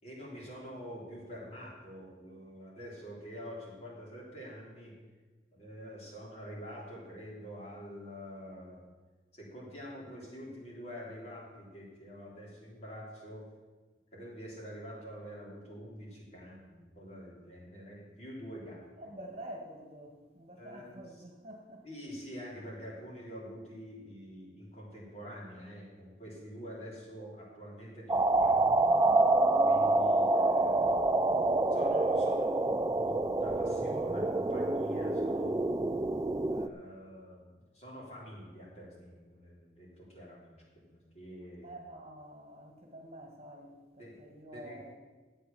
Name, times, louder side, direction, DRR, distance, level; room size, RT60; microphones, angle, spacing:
voice 1, 0.0-4.9 5.5-8.8 9.3-13.4 14.1-18.8 20.6-21.0 21.8-29.1 29.6-31.4 31.7-35.8 36.5-40.6 40.9-41.7 44.0-44.2 44.5-44.8, equal, 35° left, -4 dB, 3.8 m, -46 dB
voice 2, 19.0-21.8 41.6-44.9, right 1 dB, 35° right, 1 dB, 1.8 m, -48 dB
sound 1, 28.1-36.7, right 2 dB, 20° right, 0.4 m, -27 dB
12.0 x 8.3 x 7.0 m, 1.3 s
head